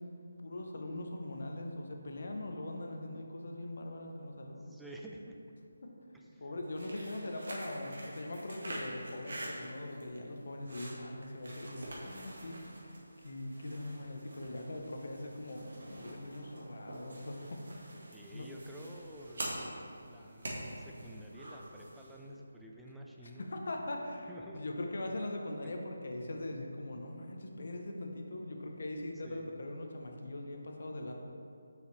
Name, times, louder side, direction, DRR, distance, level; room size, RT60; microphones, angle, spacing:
voice 1, 0.4-4.7 5.8-5.9 6.4-17.9 18.3-18.5 23.2-24.3 24.5-31.1, left 1 dB, 60° left, 2 dB, 0.8 m, -41 dB
voice 2, 4.7-5.4 6.1-6.5 18.1-19.5 20.0-23.5 24.3-24.6 28.6-28.8 29.2-29.6, right 1 dB, ahead, -2 dB, 0.4 m, -50 dB
sound 1, 6.6-22.2, right 1 dB, 65° right, 1.4 m, -46 dB
6.6 x 4.9 x 3.2 m, 2.6 s
figure-of-eight pair, 160°, 0 cm